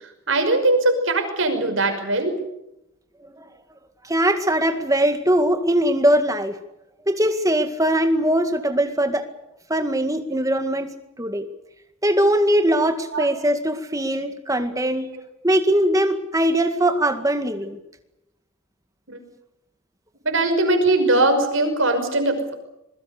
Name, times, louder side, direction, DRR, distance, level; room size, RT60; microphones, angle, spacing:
voice 1, 0.3-2.4 13.1-13.3 19.1-19.2 20.2-22.6, right 2 dB, 60° right, 6 dB, 5.6 m, -20 dB
voice 2, 4.0-6.6 7.1-9.3 9.7-11.5 12.0-15.1 15.4-17.8, right 1 dB, 15° right, 8 dB, 2.0 m, -21 dB
26.5 x 22.0 x 6.7 m, 0.88 s
head